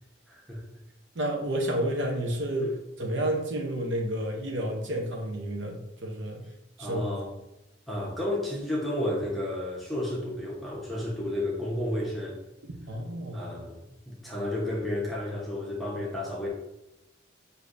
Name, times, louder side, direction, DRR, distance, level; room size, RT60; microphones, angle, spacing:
voice 1, 0.3-0.6 2.6-2.7 6.8-7.3 7.9-12.4 13.3-16.5, left 1 dB, ahead, -5 dB, 0.9 m, -32 dB
voice 2, 1.1-6.4 6.8-7.1 12.9-13.5, right 1 dB, 70° right, 1 dB, 0.7 m, -30 dB
6.3 x 2.7 x 2.5 m, 0.93 s
head